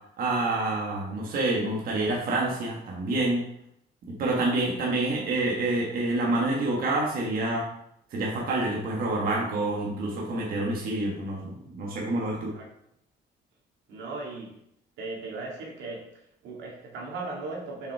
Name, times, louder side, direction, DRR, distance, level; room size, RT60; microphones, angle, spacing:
voice 1, 0.2-3.5 4.2-7.7 8.1-11.5 11.8-12.5, right 2 dB, 55° right, -3 dB, 1.5 m, -27 dB
voice 2, 13.9-14.6 15.0-16.1 16.4-17.9, right 3 dB, 90° right, -2 dB, 2.1 m, -37 dB
6.8 x 5.3 x 3.6 m, 0.76 s
cardioid pair, 160°, 18 cm